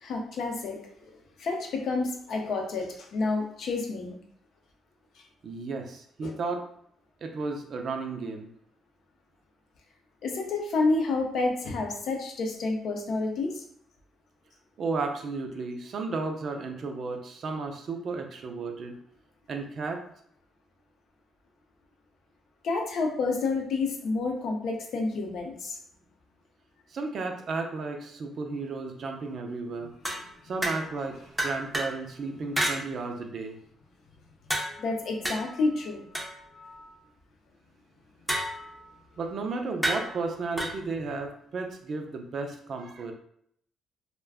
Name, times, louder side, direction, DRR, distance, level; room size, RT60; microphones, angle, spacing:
voice 1, 0.0-1.1 1.4-4.2 6.2-6.3 10.2-13.6 22.6-25.8 34.8-36.1, left 3 dB, 70° left, 1 dB, 0.6 m, -29 dB
voice 2, 5.4-6.6 7.2-8.5 14.8-19.0 19.5-20.0 26.9-29.9 30.4-33.6 39.2-43.1, right 3 dB, 55° right, 4 dB, 0.5 m, -33 dB
sound 1, 30.0-31.0 31.4-32.0 32.6-32.8 34.5-36.9 38.3-38.9 39.8-40.8, right 1 dB, 5° right, 0.6 m, -32 dB
2.4 x 2.2 x 3.4 m, 0.67 s
cardioid pair, 90°, 0 cm